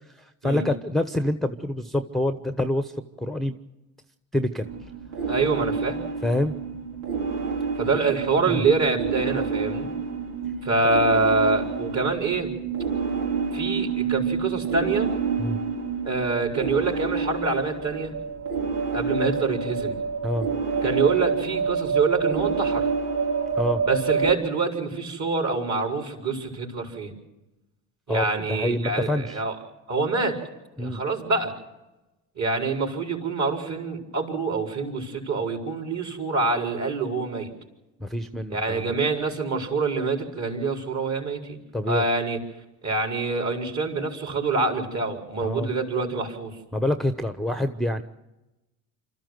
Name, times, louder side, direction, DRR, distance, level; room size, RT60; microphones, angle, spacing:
voice 1, 0.1-2.9 3.2-3.6 4.3-4.7 6.2-6.5 8.5-8.7 15.4-15.6 20.2-20.5 23.6-23.8 28.1-29.4 30.8-31.0 38.0-38.9 41.7-42.0 45.4-45.7 46.7-48.0, left 1 dB, ahead, 9 dB, 1.0 m, -26 dB
sound 1, 4.6-24.3, right 5 dB, 85° right, 2.6 m, -28 dB
voice 2, 5.3-6.0 7.8-9.9 10.6-12.5 13.5-15.1 16.0-18.2 18.9-20.0 20.8-22.9 23.8-27.1 28.1-29.5 29.9-30.4 30.8-31.5 32.4-37.5 38.5-41.6 41.9-42.4 42.8-46.6, right 3 dB, 40° right, 3 dB, 4.7 m, -25 dB
26.0 x 13.5 x 7.9 m, 1.0 s
supercardioid pair, 65°, 41 cm